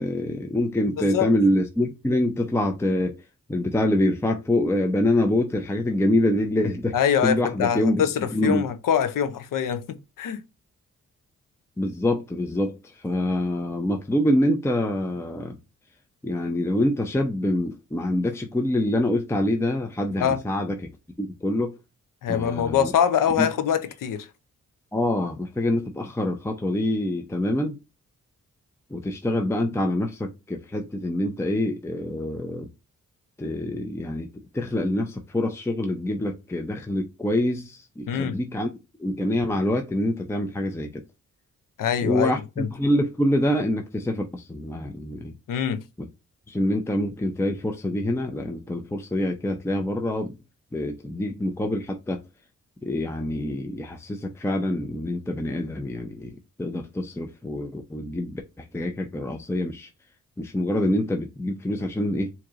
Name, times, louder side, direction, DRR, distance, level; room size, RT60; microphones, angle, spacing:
voice 1, 0.0-3.1 3.5-6.9 7.2-8.0 8.3-8.6 11.8-15.6 16.2-20.8 21.2-21.8 22.3-22.9 23.4-23.5 24.9-27.8 28.9-32.7 33.4-34.3 34.5-38.7 39.0-41.0 42.0-45.3 46.0-46.1 46.5-50.3 50.7-52.2 52.8-59.9 60.4-62.3, left 1 dB, 10° left, 0.6 m, -25 dB
voice 2, 1.0-1.3 6.9-10.4 20.2-20.4 22.2-24.3 38.1-38.4 41.8-42.3 42.6-42.7 45.5-45.8, left 8 dB, 85° left, 0.6 m, -24 dB
4.5 x 2.8 x 2.5 m
cardioid pair, 75°, 32 cm